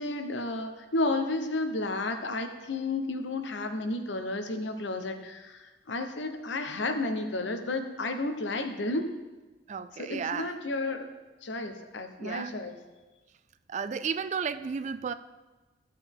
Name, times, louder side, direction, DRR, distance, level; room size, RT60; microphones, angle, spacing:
voice 1, 0.0-9.1 10.0-11.1 11.4-12.7, left 2 dB, 80° left, 6 dB, 0.9 m, -32 dB
voice 2, 9.7-10.6 12.2-12.5 13.7-15.1, right 6 dB, 40° right, 13 dB, 0.3 m, -33 dB
13.5 x 6.8 x 3.6 m, 1.2 s
head